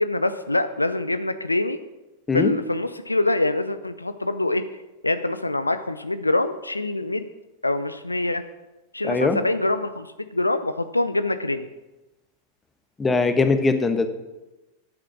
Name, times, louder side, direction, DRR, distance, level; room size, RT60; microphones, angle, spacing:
voice 1, 0.0-1.8 2.3-4.6 5.0-7.3 7.6-8.4 8.9-11.7, left 2 dB, 85° left, 12 dB, 0.6 m, -24 dB
voice 2, 9.0-9.4 13.0-14.1, left 3 dB, 15° left, 9 dB, 1.2 m, -21 dB
11.5 x 9.0 x 6.1 m, 1.1 s
figure-of-eight pair, 90°, 0 cm